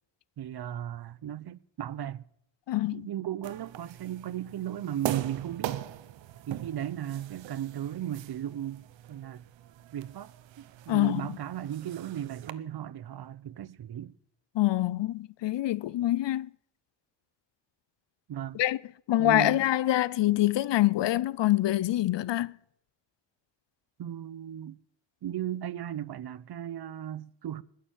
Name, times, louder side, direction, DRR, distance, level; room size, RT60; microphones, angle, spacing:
voice 1, 0.4-2.2 2.9-5.8 6.5-9.4 9.9-14.1 18.3-18.6 19.2-19.6 24.0-24.8 25.2-27.6, right 11 dB, 60° right, 0.8 m, -36 dB
voice 2, 2.7-3.1 10.9-11.3 14.5-16.5 18.5-18.8 19.1-22.6, left 15 dB, 70° left, 0.7 m, -25 dB
sound 1, 3.4-12.5, right 13 dB, 90° right, 0.9 m, -40 dB
19.5 x 6.8 x 8.8 m
cardioid pair, 55°, 44 cm